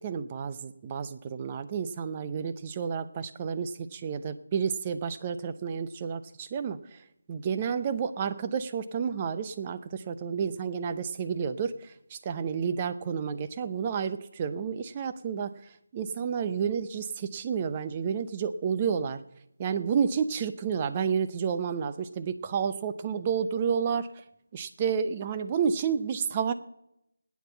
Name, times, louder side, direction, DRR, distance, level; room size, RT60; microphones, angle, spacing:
voice 1, 0.0-7.0 7.3-15.5 15.9-19.2 19.6-24.1 24.5-26.5, right 6 dB, 20° right, 10 dB, 0.7 m, -30 dB
18.5 x 9.5 x 5.8 m, 0.82 s
figure-of-eight pair, 160°, 0 cm